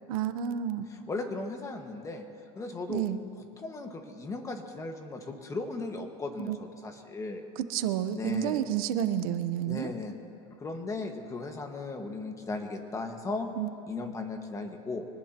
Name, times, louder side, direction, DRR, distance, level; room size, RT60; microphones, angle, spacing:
voice 1, 0.1-0.8 2.9-3.2 6.5-6.6 7.7-9.9 13.6-13.7, right 10 dB, 80° right, 10 dB, 1.0 m, -30 dB
voice 2, 0.9-2.2 2.5-3.0 3.6-7.4 8.1-8.6 9.7-10.2 10.5-13.5 13.9-15.1, left 3 dB, 15° left, 4 dB, 1.6 m, -36 dB
25.0 x 19.5 x 3.0 m, 2.6 s
supercardioid pair, 135°, 18 cm